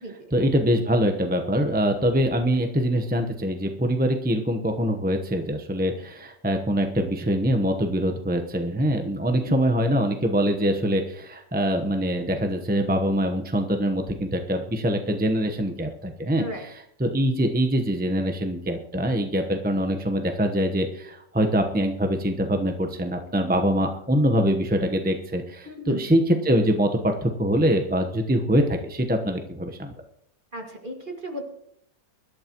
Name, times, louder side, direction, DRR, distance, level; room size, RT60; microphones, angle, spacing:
voice 1, 0.3-16.4 17.0-29.9, equal, 10° right, 5 dB, 0.5 m, -24 dB
voice 2, 16.4-16.7 25.7-26.0 30.5-31.5, right 1 dB, 30° right, 2 dB, 2.1 m, -35 dB
24.0 x 12.0 x 3.0 m, 0.72 s
omnidirectional pair, 1.9 m